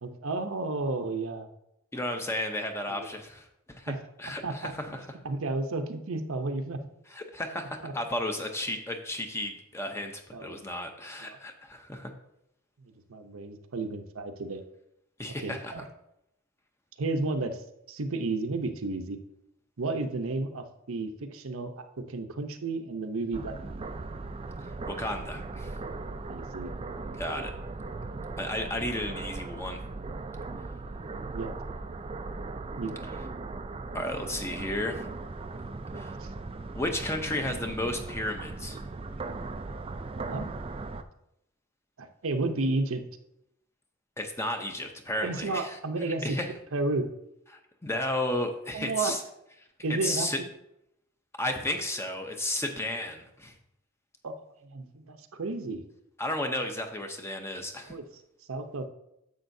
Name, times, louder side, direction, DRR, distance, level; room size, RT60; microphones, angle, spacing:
voice 1, 0.0-1.5 2.9-3.1 3.9-4.0 4.4-6.8 7.8-7.9 10.3-10.6 11.2-11.4 12.8-14.6 15.4-15.8 17.0-19.2 19.8-23.5 26.3-26.7 31.3-31.5 32.8-33.0 36.2-36.3 40.2-40.5 42.0-43.0 45.2-46.4 46.7-47.1 48.7-49.1 49.8-50.3 54.2-54.3 54.6-55.8 57.9-58.0 58.5-58.9, right 3 dB, 70° right, 7 dB, 0.7 m, -32 dB
voice 2, 1.9-5.1 7.1-12.1 15.2-15.9 24.9-25.7 27.2-27.5 28.4-29.8 33.9-35.1 35.9-36.2 36.7-38.8 44.2-45.8 46.1-46.5 47.5-49.2 50.0-50.4 51.4-53.5 56.2-57.9, left 1 dB, 10° left, 5 dB, 0.7 m, -33 dB
sound 1, 23.3-41.0, right 3 dB, 25° right, 0.3 m, -38 dB
10.5 x 7.3 x 2.7 m, 0.81 s
head